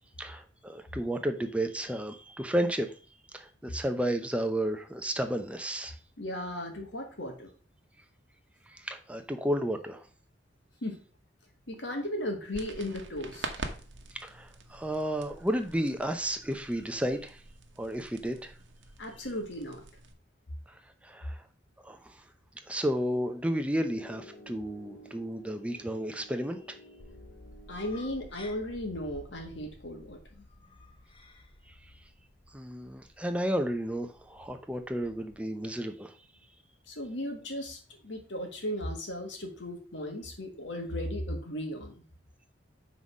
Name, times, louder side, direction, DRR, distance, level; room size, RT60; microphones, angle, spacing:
voice 1, 0.2-2.9 3.3-5.9 8.7-10.1 14.2-17.4 17.8-18.5 21.0-21.4 21.8-22.2 22.7-26.8 32.5-36.1, right 1 dB, 5° right, 6 dB, 0.7 m, -32 dB
voice 2, 6.2-7.5 10.8-11.0 11.7-13.5 19.0-19.8 27.7-30.5 36.9-42.0, left 1 dB, 70° left, 3 dB, 1.8 m, -36 dB
sound 1, 12.5-20.1, right 3 dB, 75° right, 1.1 m, -45 dB
Piano, 23.8-28.8, right 1 dB, 55° left, 1.6 m, -53 dB
sound 2, 27.0-35.4, left 2 dB, 30° left, 0.7 m, -53 dB
5.6 x 4.0 x 6.1 m, 0.40 s
head